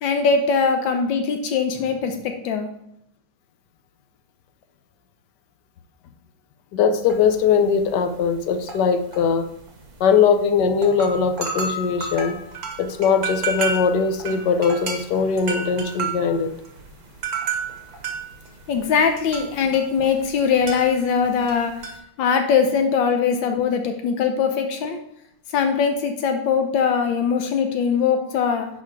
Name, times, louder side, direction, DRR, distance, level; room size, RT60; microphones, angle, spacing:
voice 1, 0.0-2.7 18.7-21.7 22.2-25.0 25.5-28.7, left 6 dB, 90° left, 5 dB, 1.6 m, -21 dB
voice 2, 6.7-9.5 10.0-12.4 12.8-16.5, left 6 dB, 70° left, 9 dB, 1.3 m, -20 dB
sound 1, 7.1-7.5 7.8-8.0 8.5-10.0 10.5-10.6 10.7-20.4 20.7-22.0, right 4 dB, 55° right, 1.6 m, -31 dB
10.5 x 4.2 x 4.7 m, 0.78 s
omnidirectional pair, 2.0 m